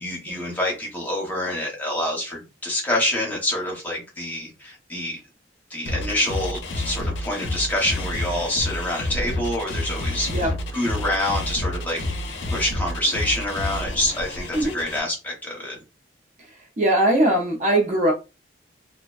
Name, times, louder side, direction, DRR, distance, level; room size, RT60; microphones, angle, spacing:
voice 1, 0.0-5.2 5.7-12.0 12.5-15.8, left 1 dB, 10° left, 0.8 m, -26 dB
sound 1, 5.8-15.0, left 1 dB, 70° left, 0.5 m, -29 dB
voice 2, 16.8-18.1, right 1 dB, 40° right, 0.5 m, -20 dB
2.4 x 2.1 x 2.3 m
head